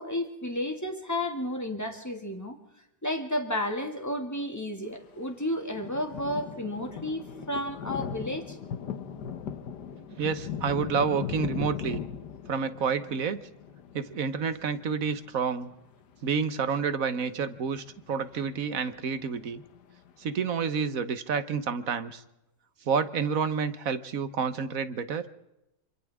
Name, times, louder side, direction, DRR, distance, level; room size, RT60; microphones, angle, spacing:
voice 1, 0.0-2.6 3.0-8.6, left 1 dB, 10° left, 4 dB, 2.1 m, -32 dB
sound 1, 5.2-5.3 5.6-17.1 17.4-20.5, left 7 dB, 65° left, 1.6 m, -39 dB
voice 2, 10.2-12.0 12.5-13.4 13.9-15.7 16.2-19.6 20.2-22.2 22.9-25.3, right 6 dB, 50° right, 12 dB, 1.4 m, -29 dB
27.0 x 27.0 x 3.6 m, 0.92 s
omnidirectional pair, 2.0 m